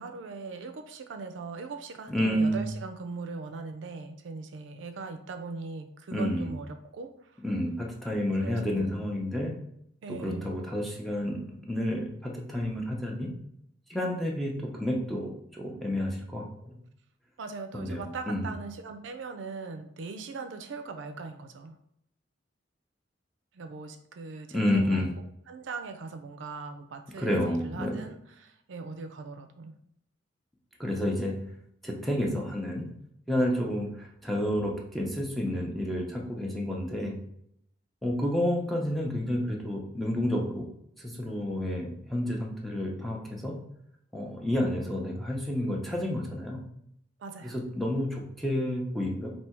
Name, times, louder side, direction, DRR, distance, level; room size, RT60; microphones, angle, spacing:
voice 1, 0.0-7.4 8.4-9.1 10.0-10.6 17.4-21.8 23.5-25.1 25.5-29.8 47.2-47.6, right 4 dB, 80° right, 7 dB, 0.4 m, -40 dB
voice 2, 2.1-2.7 6.1-6.5 7.4-9.5 10.2-13.3 13.9-16.8 17.7-18.5 24.5-25.1 27.2-27.9 30.8-31.4 31.8-32.9 33.3-37.2 38.0-40.7 41.0-43.5 44.1-46.6 47.8-49.3, left 1 dB, ahead, -1 dB, 0.7 m, -30 dB
3.4 x 2.7 x 4.4 m, 0.73 s
head